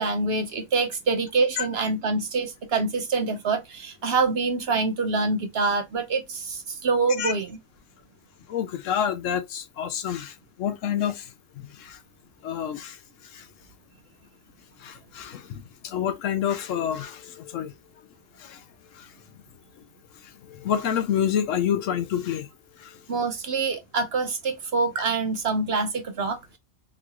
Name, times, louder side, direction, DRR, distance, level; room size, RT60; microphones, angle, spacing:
voice 1, 0.0-7.6 23.1-26.6, right 4 dB, 60° right, 0.8 m, -26 dB
voice 2, 8.5-11.3 11.8-12.0 12.4-13.0 13.3-13.4 14.8-17.7 18.4-18.6 19.0-19.1 20.5-22.5 22.8-22.9, left 9 dB, 70° left, 1.0 m, -28 dB
3.8 x 3.1 x 2.3 m
omnidirectional pair, 1.4 m